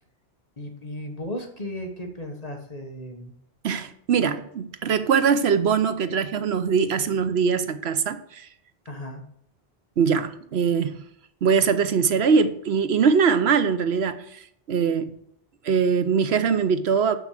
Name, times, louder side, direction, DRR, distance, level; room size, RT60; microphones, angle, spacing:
voice 1, 0.6-3.3 8.9-9.2, left 1 dB, 40° left, 1.5 m, -35 dB
voice 2, 3.6-8.5 10.0-10.9 11.4-14.4 14.7-15.1 15.6-17.2, right 6 dB, 90° right, 1.1 m, -22 dB
7.1 x 6.0 x 6.5 m
omnidirectional pair, 1.1 m